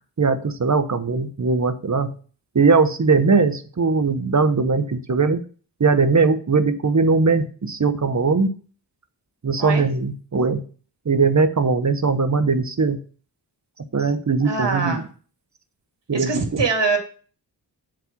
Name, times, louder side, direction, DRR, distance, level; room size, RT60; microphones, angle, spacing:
voice 1, 0.2-2.1 2.5-5.4 5.8-8.5 9.4-10.6 11.1-13.0 13.9-15.0 16.1-16.6, right 4 dB, 45° right, 9 dB, 1.0 m, -20 dB
voice 2, 14.4-15.0 16.1-17.0, right 4 dB, 80° right, 3 dB, 2.2 m, -23 dB
7.6 x 4.9 x 7.3 m, 0.40 s
wide cardioid pair, 80°, 42 cm